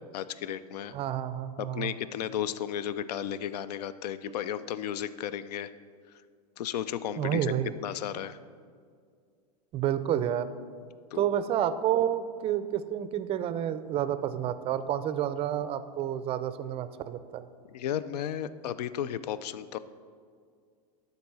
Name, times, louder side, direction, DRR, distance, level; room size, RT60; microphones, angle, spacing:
voice 1, 0.1-0.9 1.6-5.7 6.6-8.4 11.1-11.3 17.7-19.8, left 10 dB, 85° left, 15 dB, 0.4 m, -34 dB
voice 2, 0.9-1.9 7.2-7.7 9.7-10.5 11.1-17.5, right 10 dB, 30° right, 12 dB, 0.4 m, -29 dB
11.5 x 4.1 x 5.4 m, 2.1 s
supercardioid pair, 125°, 20 cm